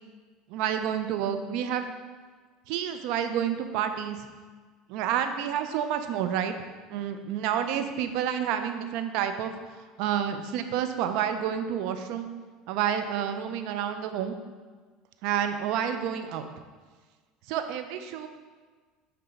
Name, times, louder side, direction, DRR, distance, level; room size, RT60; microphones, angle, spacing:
voice 1, 0.5-1.9 2.7-4.3 4.9-6.5 6.9-9.5 10.0-12.3 12.7-14.4 15.2-16.5 17.5-18.3, right 9 dB, 65° right, 8 dB, 0.4 m, -29 dB
5.7 x 3.3 x 5.0 m, 1.4 s
supercardioid pair, 95°, 0 cm